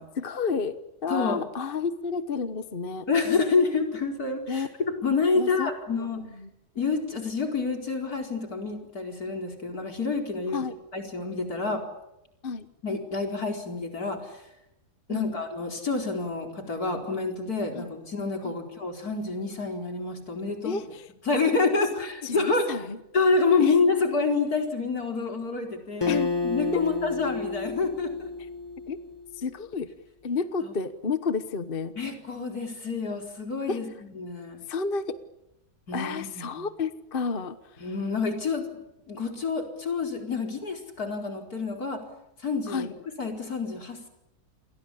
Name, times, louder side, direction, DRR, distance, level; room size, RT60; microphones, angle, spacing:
voice 1, 0.1-3.1 4.5-4.7 5.4-5.7 6.0-6.5 10.5-10.7 12.4-12.7 15.1-15.3 17.8-17.9 18.4-18.5 20.6-21.1 22.0-23.0 23.6-23.8 26.1-26.2 26.7-26.8 28.9-29.0 29.3-29.9 30.2-31.9 33.7-33.8 34.7-35.2 35.9-37.9 42.7-42.9, left 5 dB, 40° left, 12 dB, 1.2 m, -31 dB
voice 2, 1.1-1.4 3.1-4.7 5.0-6.2 6.7-10.6 10.9-11.8 12.8-14.4 15.1-20.7 21.3-22.7 23.1-28.3 32.0-33.9 34.1-34.6 35.9-36.5 37.8-38.7 39.1-42.0 42.4-42.9 43.2-44.1, left 4 dB, 70° left, 3 dB, 5.0 m, -28 dB
Acoustic guitar, 26.0-29.5, left 3 dB, 15° left, 1.9 m, -31 dB
29.5 x 23.0 x 8.5 m, 0.88 s
omnidirectional pair, 1.6 m